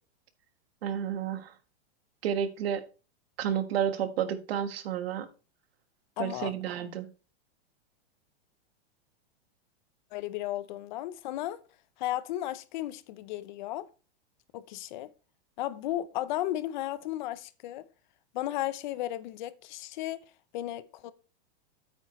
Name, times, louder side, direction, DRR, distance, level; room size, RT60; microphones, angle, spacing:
voice 1, 0.8-1.5 2.2-2.8 3.4-5.3 6.2-7.1, right 9 dB, 70° right, 1.4 m, -31 dB
voice 2, 6.2-6.5 10.1-11.6 12.0-13.9 14.5-15.1 15.6-17.9 18.3-20.2 20.5-21.1, left 14 dB, 50° left, 0.7 m, -34 dB
9.5 x 8.6 x 3.1 m
supercardioid pair, 160°, 31 cm